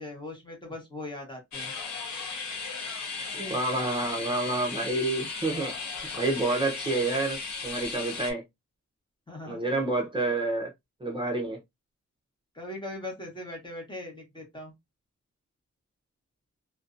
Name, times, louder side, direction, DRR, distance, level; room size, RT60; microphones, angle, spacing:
voice 1, 0.0-1.7 9.3-9.9 12.5-14.7, left 2 dB, 15° left, 1.0 m, -40 dB
sound 1, 1.5-8.3, left 4 dB, 70° left, 0.6 m, -36 dB
voice 2, 3.3-5.7 6.2-8.4 9.4-10.7 11.0-11.6, right 2 dB, 15° right, 0.5 m, -29 dB
2.5 x 2.1 x 2.4 m
wide cardioid pair, 175°, 30 cm